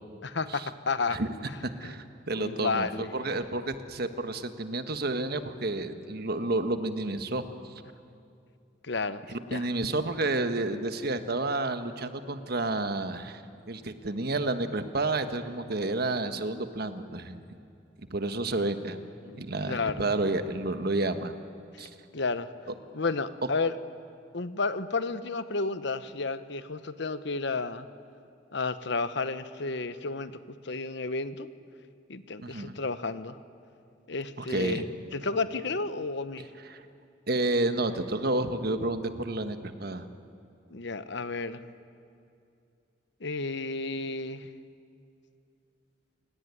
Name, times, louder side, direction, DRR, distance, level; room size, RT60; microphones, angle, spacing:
voice 1, 0.2-1.2 1.5-1.6 1.8-2.0 2.3-3.1 8.8-9.2 9.5-9.7 19.2-20.0 21.7-21.8 22.1-22.5 22.9-23.7 24.3-27.9 28.5-31.5 32.1-33.4 34.1-36.4 40.7-41.6 43.2-44.5, left 3 dB, 65° left, 12 dB, 1.0 m, -32 dB
voice 2, 1.6-7.5 9.3-13.4 13.7-17.4 18.1-19.0 19.4-21.3 21.8-21.9 32.4-32.8 34.4-34.9 36.7-36.8 37.3-40.1, right 2 dB, 55° right, 9 dB, 1.4 m, -30 dB
29.0 x 18.0 x 9.8 m, 2.5 s
head